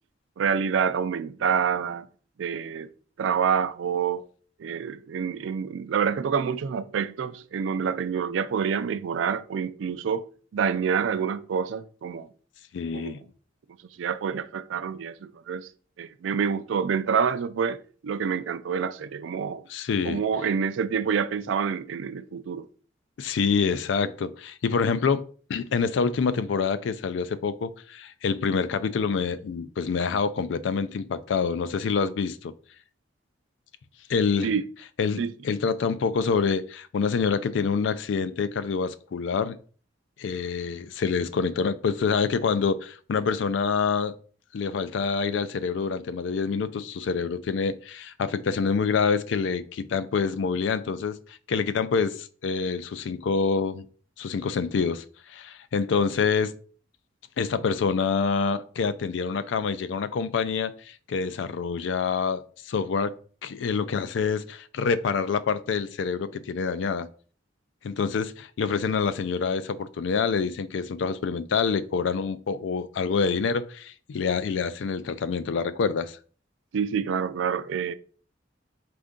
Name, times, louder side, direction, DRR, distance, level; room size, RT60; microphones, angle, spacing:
voice 1, 0.4-2.1 2.4-2.9 3.2-4.2 4.6-10.2 10.5-12.3 12.9-13.1 14.0-15.7 16.0-17.8 18.0-19.6 20.0-22.7 34.4-34.6 35.2-35.3 76.7-77.9, right 6 dB, 80° right, 0.4 m, -27 dB
voice 2, 12.7-13.2 19.7-20.2 23.2-32.5 34.1-34.5 35.0-39.6 40.2-44.1 44.5-51.2 51.5-53.8 54.2-56.5 57.4-63.1 63.4-67.1 67.8-76.2, left 5 dB, 70° left, 0.4 m, -26 dB
4.4 x 2.6 x 3.6 m
head